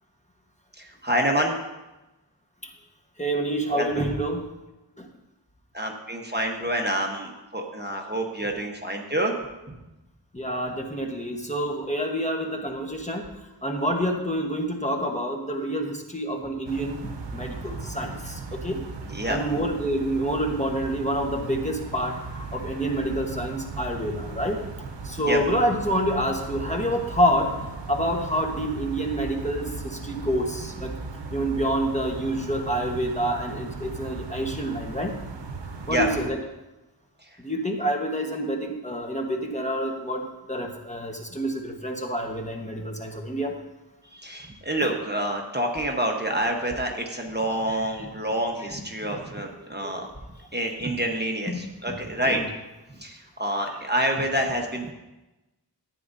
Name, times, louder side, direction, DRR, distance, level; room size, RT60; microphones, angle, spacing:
voice 1, 0.7-1.6 3.7-4.1 5.7-9.3 17.6-17.7 18.0-18.1 19.0-19.4 25.3-25.4 35.9-36.1 37.3-37.4 44.1-50.1 50.4-52.4 52.9-54.9, right 1 dB, 25° right, 1 dB, 1.1 m, -27 dB
voice 2, 3.2-4.5 10.3-13.3 13.6-17.0 17.3-18.8 19.3-24.6 25.0-27.5 27.9-31.0 31.3-35.1 35.9-36.4 37.4-43.6 49.8-49.9 51.5-52.0 52.2-52.4, equal, 15° left, 2 dB, 1.2 m, -27 dB
sound 1, 16.7-36.3, right 4 dB, 80° right, 0.8 m, -37 dB
13.5 x 9.3 x 2.7 m, 1.0 s
wide cardioid pair, 60°, 42 cm